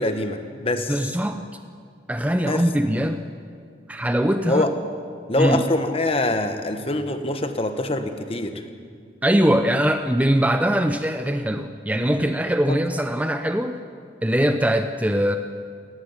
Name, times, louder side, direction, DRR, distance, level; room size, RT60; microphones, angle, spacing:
voice 1, 0.0-1.1 2.5-2.7 4.4-4.7 5.3-8.5 12.7-12.8, left 2 dB, 30° left, 8 dB, 1.4 m, -24 dB
voice 2, 0.9-1.4 2.1-3.2 3.9-4.6 5.4-5.6 9.2-13.8 14.2-15.4, equal, 10° right, 7 dB, 0.6 m, -21 dB
17.5 x 15.5 x 9.6 m, 2.2 s
head